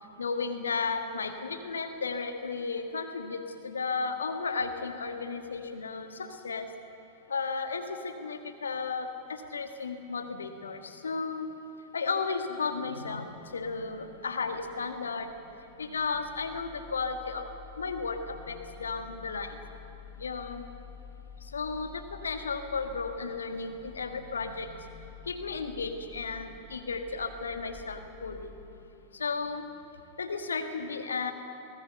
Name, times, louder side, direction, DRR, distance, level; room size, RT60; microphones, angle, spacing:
voice 1, 0.2-6.7 7.3-11.5 11.9-15.3 15.8-17.5 17.8-19.6 20.2-20.6 21.4-28.5 29.1-29.7 30.2-31.3, left 4 dB, 70° left, 7 dB, 1.7 m, -34 dB
sound 1, 13.5-28.7, left 7 dB, 15° left, 2.1 m, -50 dB
22.0 x 20.0 x 6.8 m, 2.9 s
figure-of-eight pair, 90°, 0 cm